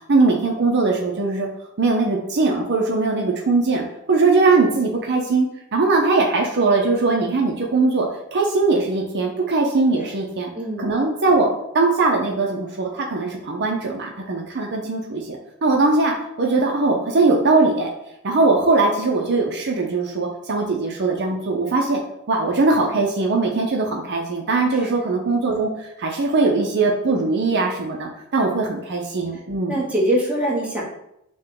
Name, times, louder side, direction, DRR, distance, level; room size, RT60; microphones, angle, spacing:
voice 1, 0.1-1.5 1.8-5.5 5.7-10.5 10.8-11.5 11.7-17.9 18.2-22.0 22.3-29.8, right 3 dB, 50° right, 0 dB, 0.6 m, -20 dB
voice 2, 10.5-10.9 24.7-24.9 28.4-28.7 29.7-30.8, right 1 dB, 5° right, -5 dB, 1.0 m, -24 dB
6.2 x 2.2 x 3.7 m, 0.80 s
head